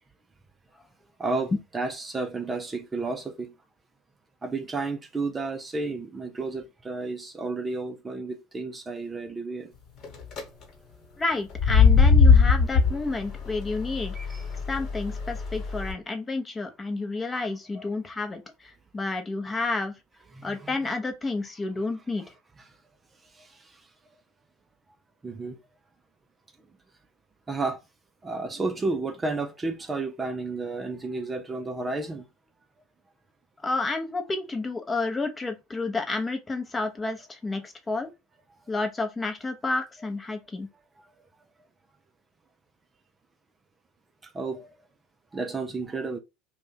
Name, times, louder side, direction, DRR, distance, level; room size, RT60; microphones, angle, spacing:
voice 1, 1.2-3.5 4.4-9.7 14.1-14.5 17.7-17.9 20.3-20.8 23.3-23.8 25.2-25.6 27.5-27.8 28.2-32.3 41.0-41.1 44.2-44.7 45.3-46.2, right 3 dB, 20° right, 0.4 m, -32 dB
sound 1, 10.0-10.4 11.5-15.9, left 5 dB, 50° left, 1.3 m, -21 dB
voice 2, 11.2-14.2 14.7-19.9 20.4-22.3 33.6-38.1 38.7-40.7, left 3 dB, 20° left, 0.7 m, -30 dB
2.5 x 2.2 x 3.7 m
hypercardioid pair, 75°, 0 cm